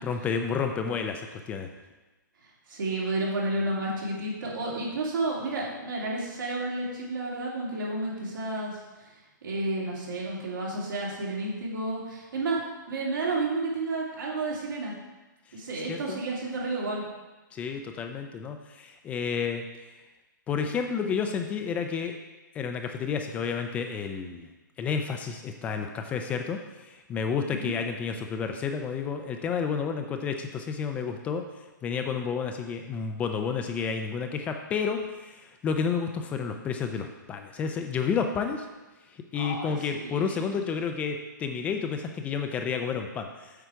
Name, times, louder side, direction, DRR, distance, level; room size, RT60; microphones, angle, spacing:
voice 1, 0.0-1.7 15.9-16.2 17.5-19.6 20.5-22.1 22.5-24.5 24.8-31.4 31.8-38.7 39.1-43.5, left 6 dB, 15° left, 5 dB, 0.3 m, -30 dB
voice 2, 2.7-8.8 9.4-12.6 12.9-14.9 15.5-17.0 27.5-27.7 39.3-40.4, right 2 dB, 80° right, -4 dB, 2.7 m, -31 dB
8.1 x 4.9 x 4.6 m, 1.2 s
hypercardioid pair, 150°, 11 cm